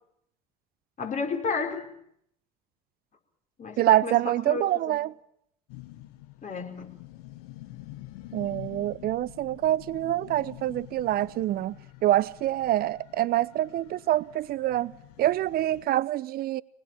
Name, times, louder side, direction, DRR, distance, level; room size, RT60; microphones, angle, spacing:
voice 1, 1.0-1.9 3.6-4.2 4.5-5.0 6.4-6.9, left 4 dB, 40° left, 5.1 m, -32 dB
voice 2, 3.8-5.1 8.3-11.8 12.0-14.9 15.2-16.6, right 14 dB, 50° right, 0.8 m, -26 dB
sound 1, 5.7-15.9, left 16 dB, 70° left, 1.7 m, -47 dB
24.5 x 20.0 x 7.5 m
hypercardioid pair, 70°, 20 cm